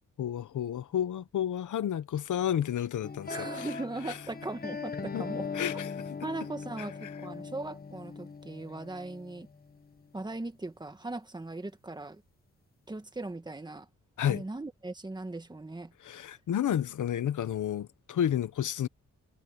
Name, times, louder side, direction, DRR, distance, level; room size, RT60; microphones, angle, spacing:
voice 1, 0.2-3.7 4.1-4.2 5.1-5.3 5.5-6.0 6.8-7.1 14.2-14.4 16.0-18.9, left 10 dB, 85° left, 1.0 m, -31 dB
sound 1, 3.0-10.1, left 5 dB, 30° left, 1.3 m, -40 dB
voice 2, 3.3-5.8 6.2-9.5 10.1-12.2 12.9-13.9 14.3-15.9, right 2 dB, 15° right, 1.6 m, -39 dB
wide cardioid pair, 135°, 30 cm